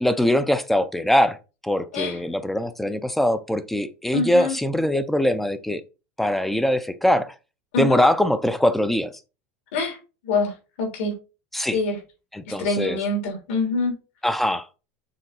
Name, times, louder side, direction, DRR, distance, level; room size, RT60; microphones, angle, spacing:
voice 1, 0.0-1.4 1.6-5.8 6.2-7.3 7.8-9.1 11.5-11.8 12.3-13.0 14.2-14.7, left 1 dB, 5° left, 0.3 m, -22 dB
voice 2, 4.1-4.5 7.7-8.0 9.7-10.0 10.2-11.1 11.7-12.0 12.5-13.9, left 3 dB, 80° left, 3.5 m, -25 dB
6.6 x 3.9 x 4.2 m
supercardioid pair, 180°, 7 cm